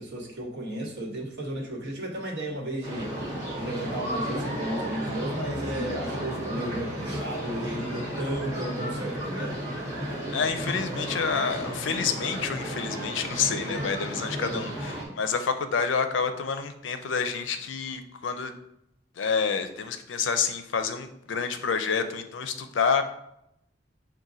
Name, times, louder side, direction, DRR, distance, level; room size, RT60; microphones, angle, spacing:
voice 1, 0.0-9.6 14.4-14.7, right 1 dB, 65° right, -1 dB, 1.1 m, -34 dB
sound 1, 2.8-15.0, equal, 20° right, 1.3 m, -33 dB
voice 2, 10.3-18.5 19.2-23.0, left 6 dB, 85° left, 8 dB, 0.5 m, -28 dB
6.0 x 2.2 x 3.9 m, 0.79 s
head